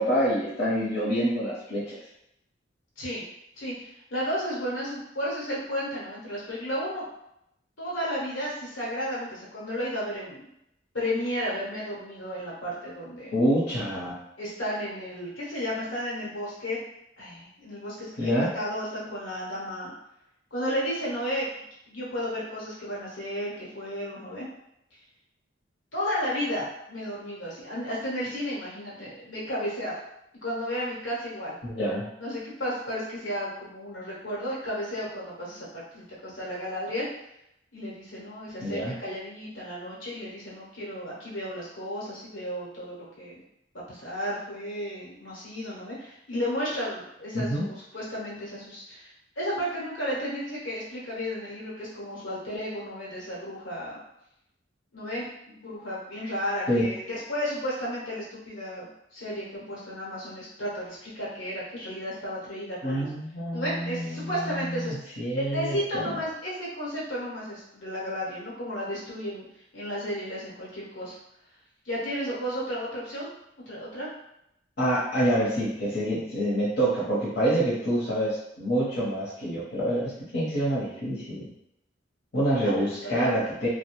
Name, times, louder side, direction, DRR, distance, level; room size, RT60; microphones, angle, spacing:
voice 1, 0.0-2.0 13.3-14.1 18.2-18.5 31.6-32.1 38.6-38.9 47.3-47.6 56.7-56.9 62.8-66.0 74.8-81.5 82.3-83.7, equal, 55° left, -9 dB, 0.9 m, -27 dB
voice 2, 3.6-7.0 7.8-10.4 10.9-13.4 14.4-16.8 17.2-19.9 20.5-21.5 21.9-24.5 25.9-29.9 30.4-31.5 32.2-37.1 37.7-43.4 43.9-54.0 54.9-63.1 63.5-64.9 65.3-69.4 69.7-71.1 71.8-73.3 73.7-74.1 82.6-83.3, equal, 85° left, -6 dB, 1.1 m, -33 dB
2.4 x 2.1 x 3.0 m, 0.80 s
head